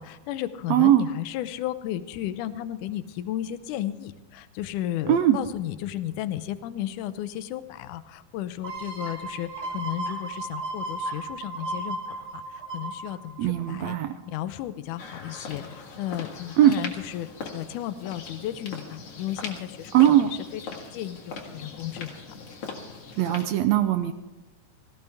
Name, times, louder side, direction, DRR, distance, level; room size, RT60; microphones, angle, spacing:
voice 1, 0.0-12.0 12.3-12.4 12.7-14.0 14.3-17.3 17.5-19.9 20.7-22.1, left 12 dB, 80° left, 12 dB, 2.2 m, -34 dB
voice 2, 0.7-1.1 5.1-5.4 13.4-14.1 16.6-16.7 19.9-20.3 23.2-24.1, right 12 dB, 80° right, 10 dB, 1.6 m, -20 dB
sound 1, 8.6-14.1 14.6-14.7, right 2 dB, 55° right, 4.9 m, -35 dB
sound 2, 15.0-23.5, left 4 dB, 55° left, 2.7 m, -40 dB
17.5 x 17.0 x 3.5 m, 1.1 s
omnidirectional pair, 3.7 m